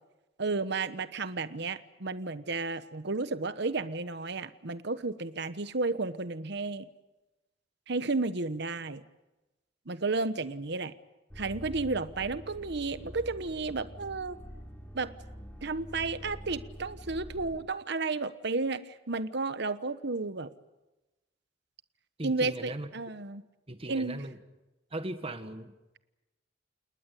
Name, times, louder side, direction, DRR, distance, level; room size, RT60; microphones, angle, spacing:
voice 1, 0.4-6.9 7.9-9.0 9.9-10.9 11.4-14.4 14.9-15.1 15.6-20.5 22.2-23.4 23.9-24.2, right 3 dB, 65° right, 13 dB, 1.2 m, -32 dB
sound 1, 11.3-17.5, equal, 10° left, 3.4 m, -46 dB
voice 2, 22.2-22.9 23.7-24.4 24.9-25.7, right 1 dB, 30° right, 9 dB, 1.7 m, -38 dB
29.0 x 20.0 x 8.4 m, 1.0 s
head